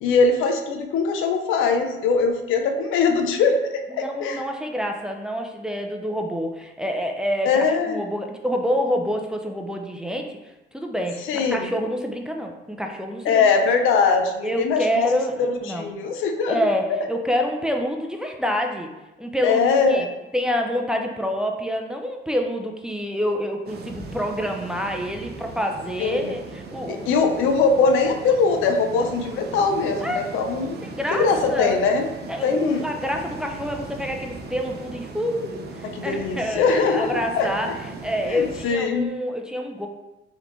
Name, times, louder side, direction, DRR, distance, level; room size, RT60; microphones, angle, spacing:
voice 1, 0.0-3.6 3.9-4.4 7.5-8.0 11.3-11.7 13.2-15.1 15.5-16.6 19.4-20.1 26.0-26.3 26.9-30.8 31.1-32.1 32.4-32.9 35.8-37.5 38.3-39.1, left 4 dB, 85° left, 5 dB, 0.5 m, -21 dB
voice 2, 3.9-10.4 10.7-13.4 14.4-15.9 16.5-18.9 19.2-20.1 20.3-27.3 30.0-30.3 30.8-31.8 32.3-39.9, equal, 5° right, 2 dB, 0.5 m, -27 dB
sound 1, 23.7-38.7, right 4 dB, 55° right, 0.6 m, -38 dB
3.7 x 3.4 x 3.1 m, 1.0 s
cardioid pair, 90°, 20 cm